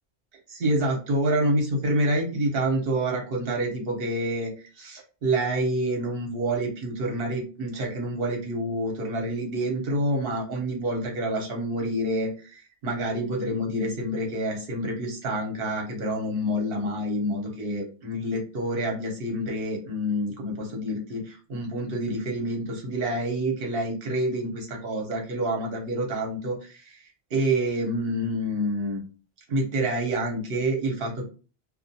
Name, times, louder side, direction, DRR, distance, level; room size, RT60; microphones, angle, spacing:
voice 1, 0.5-27.0 27.3-29.0 29.5-31.3, right 1 dB, 60° right, 0 dB, 1.0 m, -28 dB
2.3 x 2.2 x 2.7 m, 0.36 s
omnidirectional pair, 1.1 m